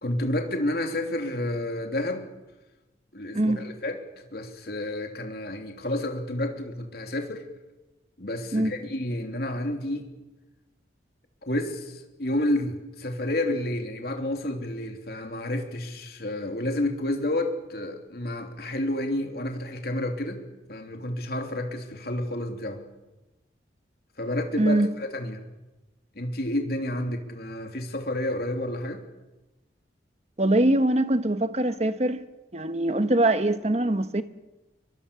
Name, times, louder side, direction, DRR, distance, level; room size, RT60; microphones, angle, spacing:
voice 1, 0.0-2.3 3.1-7.4 8.2-10.1 11.4-20.4 20.7-22.8 24.2-25.4 26.1-29.0, left 1 dB, 60° left, 3.1 m, -30 dB
voice 2, 30.4-32.2 32.5-34.2, right 1 dB, 35° right, 1.1 m, -23 dB
23.5 x 23.0 x 6.9 m
head